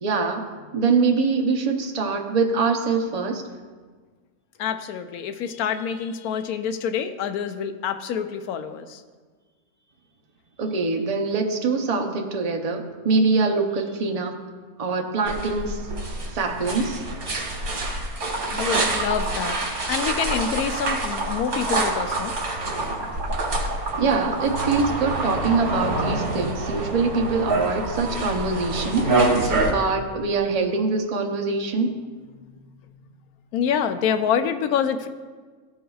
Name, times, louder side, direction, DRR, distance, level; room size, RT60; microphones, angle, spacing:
voice 1, 0.0-3.4 10.6-14.4 14.8-15.9 16.3-17.0 24.0-29.1 29.7-32.0, right 4 dB, 40° right, 3 dB, 0.5 m, -24 dB
voice 2, 4.6-9.0 18.5-19.6 19.9-22.3 29.6-29.7 32.3-32.6 33.5-35.1, left 7 dB, 85° left, 9 dB, 1.1 m, -27 dB
sound 1, 15.2-29.7, right 2 dB, 80° right, 1.8 m, -27 dB
Liquid, 18.2-26.2, right 2 dB, 60° right, 1.8 m, -31 dB
14.0 x 5.5 x 2.3 m, 1.5 s
omnidirectional pair, 1.5 m